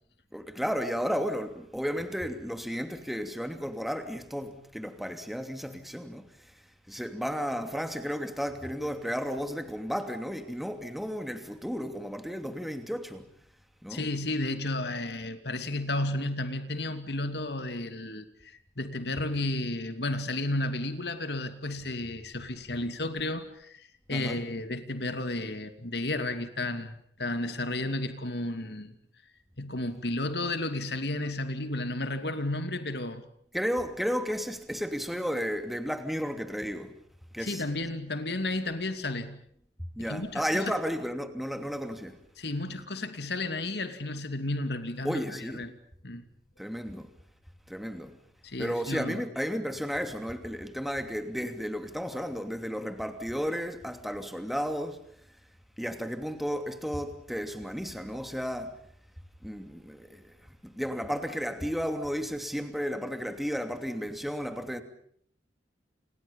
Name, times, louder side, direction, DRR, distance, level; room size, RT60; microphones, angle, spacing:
voice 1, 0.3-6.5 6.9-13.3 13.8-14.1 24.1-24.4 33.5-36.9 37.3-37.6 39.9-42.2 45.0-45.6 46.6-47.1 47.7-48.2 48.6-55.0 55.8-58.8 59.4-64.8, equal, ahead, 2.8 m, -33 dB
voice 2, 13.9-29.0 29.6-33.3 37.4-39.4 40.0-40.7 42.4-45.7 46.0-46.2 48.4-49.2, left 2 dB, 65° left, 2.7 m, -33 dB
29.5 x 29.5 x 5.5 m
head